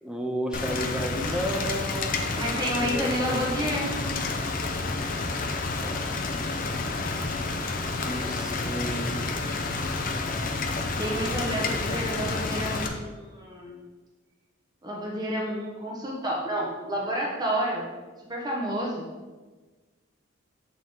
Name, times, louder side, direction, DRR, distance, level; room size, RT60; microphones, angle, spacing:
voice 1, 0.0-2.3 2.8-3.5 5.7-6.1 8.1-9.3, equal, 5° right, 2 dB, 0.5 m, -32 dB
Rain, 0.5-12.9, left 3 dB, 45° left, 0.6 m, -30 dB
voice 2, 2.4-3.9 11.0-13.8 14.8-17.8 18.3-19.1, equal, 20° right, -3 dB, 0.9 m, -30 dB
7.2 x 3.6 x 3.9 m, 1.3 s
head